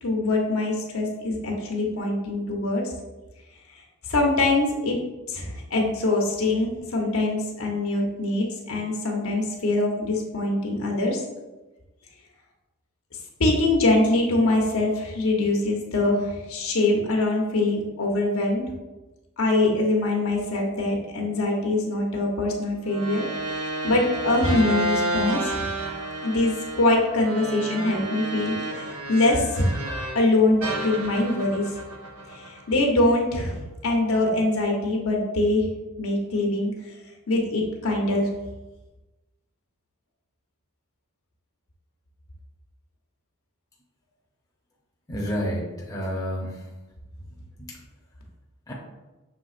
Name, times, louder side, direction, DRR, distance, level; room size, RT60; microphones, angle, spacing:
voice 1, 0.0-2.8 4.1-5.0 5.3-11.2 13.4-18.6 19.4-23.2 23.8-25.6 26.2-29.8 30.1-31.7 32.3-33.6 33.8-35.7 36.0-36.7 37.3-38.3, left 2 dB, 70° left, 0 dB, 0.9 m, -23 dB
sound 1, 22.9-30.3 30.6-33.0, right 2 dB, 85° right, 0.8 m, -31 dB
voice 2, 45.1-46.7 47.6-47.8 48.7-48.8, equal, 15° left, -3 dB, 0.7 m, -30 dB
6.0 x 3.4 x 2.5 m, 1.1 s
head